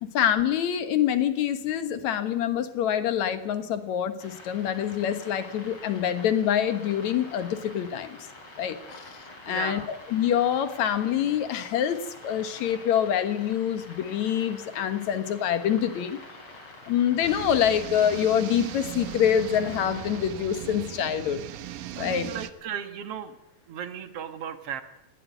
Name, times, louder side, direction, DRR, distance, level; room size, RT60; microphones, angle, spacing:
voice 1, 0.0-8.2 8.6-9.0 9.5-16.2 16.9-21.4 22.0-22.3, left 9 dB, 60° left, 10 dB, 2.4 m, -26 dB
sound 1, 4.2-20.2, left 2 dB, 35° left, 5.1 m, -47 dB
voice 2, 9.5-9.9 21.9-23.4 23.7-24.8, right 8 dB, 55° right, 9 dB, 1.9 m, -35 dB
sound 2, 17.2-22.5, right 12 dB, 70° right, 2.4 m, -38 dB
19.5 x 16.0 x 9.4 m, 0.99 s
omnidirectional pair, 4.1 m